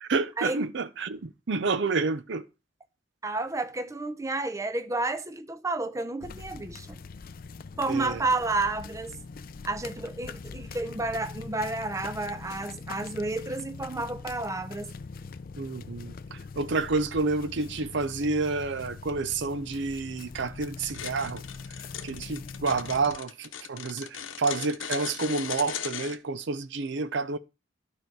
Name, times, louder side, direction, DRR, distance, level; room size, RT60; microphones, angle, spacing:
voice 1, 0.0-2.5 7.9-8.2 15.6-21.4 22.0-27.4, right 3 dB, 65° right, 0.6 m, -29 dB
voice 2, 3.2-7.0 7.8-9.2 9.6-14.9, right 2 dB, 15° right, 0.6 m, -31 dB
sound 1, 6.2-23.2, left 4 dB, 50° left, 0.4 m, -42 dB
sound 2, 20.9-26.2, left 8 dB, 85° left, 0.9 m, -37 dB
12.0 x 4.9 x 4.6 m
head